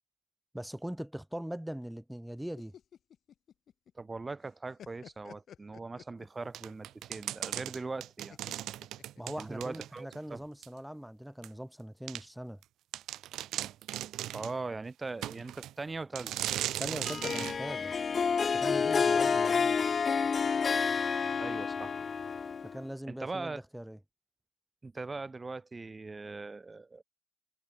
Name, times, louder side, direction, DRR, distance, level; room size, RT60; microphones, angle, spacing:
voice 1, 0.5-2.8 9.2-12.6 16.8-17.9 18.5-19.8 22.6-24.0, equal, 5° right, 5.1 m, -41 dB
sound 1, 2.4-4.1 4.4-6.6 8.3-9.7, left 9 dB, 60° left, 7.8 m, -53 dB
voice 2, 4.0-8.4 9.4-10.4 14.3-16.3 19.2-19.4 21.4-22.0 23.1-23.6 24.8-27.0, right 3 dB, 25° right, 6.8 m, -40 dB
sound 2, 6.5-10.2 10.6-10.7 11.4-11.5 12.1-12.2 12.6-12.7 12.9-14.6 15.2-15.7 16.2-17.6, right 13 dB, 80° right, 3.5 m, -37 dB
Harp, 17.0-22.8, left 5 dB, 40° left, 1.7 m, -29 dB
cardioid pair, 90°, 0 cm